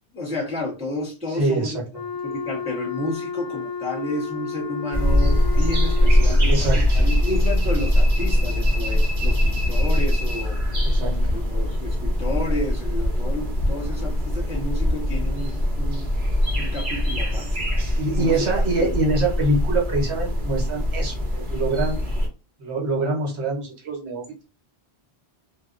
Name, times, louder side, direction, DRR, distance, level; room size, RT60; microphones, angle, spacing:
voice 1, 0.1-1.8 2.2-10.6 11.0-16.1 16.6-17.5 18.2-18.4 18.8-18.9, left 1 dB, 5° right, -6 dB, 0.8 m, -31 dB
voice 2, 1.3-1.8 6.2-6.8 10.8-11.4 18.0-22.0 22.6-24.4, right 2 dB, 80° right, 0 dB, 1.3 m, -25 dB
Wind instrument woodwind instrument, 1.9-6.6, left 5 dB, 40° left, 0.7 m, -32 dB
sound 1, 4.9-22.3, left 1 dB, 50° right, 0.9 m, -22 dB
2.7 x 2.2 x 2.4 m, 0.32 s
omnidirectional pair, 1.1 m